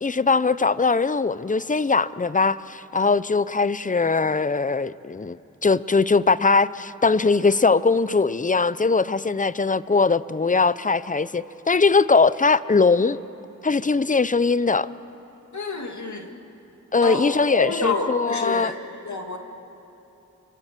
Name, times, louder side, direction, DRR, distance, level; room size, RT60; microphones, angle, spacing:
voice 1, 0.0-5.4 5.6-13.2 13.6-14.9 16.9-18.7, left 4 dB, 25° left, 0.6 m, -21 dB
voice 2, 15.5-16.4 17.0-18.8 19.0-19.4, left 3 dB, 65° left, 2.1 m, -28 dB
26.0 x 24.5 x 7.5 m
cardioid pair, 40°, 31 cm